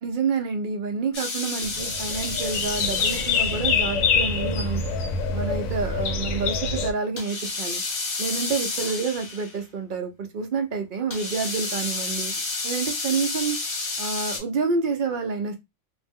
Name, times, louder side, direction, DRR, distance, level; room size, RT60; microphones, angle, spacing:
voice 1, 0.0-4.8 5.3-7.8 8.2-12.3 12.6-13.6 14.0-15.6, right 5 dB, 65° right, 0.5 m, -28 dB
sound 1, 1.1-4.0 7.2-9.6 11.1-14.4, left 3 dB, 45° left, 1.0 m, -31 dB
sound 2, 1.6-6.9, left 5 dB, 75° left, 0.9 m, -25 dB
2.5 x 2.0 x 3.4 m
omnidirectional pair, 1.4 m